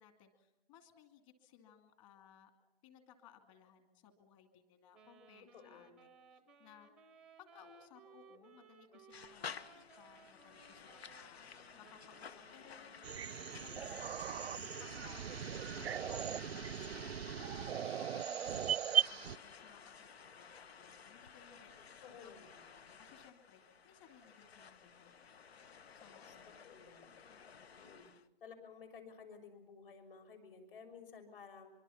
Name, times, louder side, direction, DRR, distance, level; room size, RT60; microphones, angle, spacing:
voice 1, 0.0-2.5 2.8-5.9 6.3-6.9 7.4-11.4 11.7-13.2 13.5-17.3 17.7-21.7 22.1-22.3 22.7-25.4 25.9-26.6 27.3-27.7, left 8 dB, 30° left, 7 dB, 2.7 m, -62 dB
Wind instrument woodwind instrument, 4.9-13.4, right 5 dB, ahead, 0.7 m, -62 dB
voice 2, 5.5-5.9 22.0-22.6 26.2-26.4 26.6-27.1 27.8-28.1 28.4-31.7, left 6 dB, 60° left, 6 dB, 6.3 m, -54 dB
sound 1, 9.1-28.2, left 6 dB, 85° left, 1.3 m, -53 dB
sound 2, 13.0-19.4, right 9 dB, 85° right, 0.7 m, -38 dB
24.0 x 24.0 x 5.8 m, 1.1 s
hypercardioid pair, 160°, 30 cm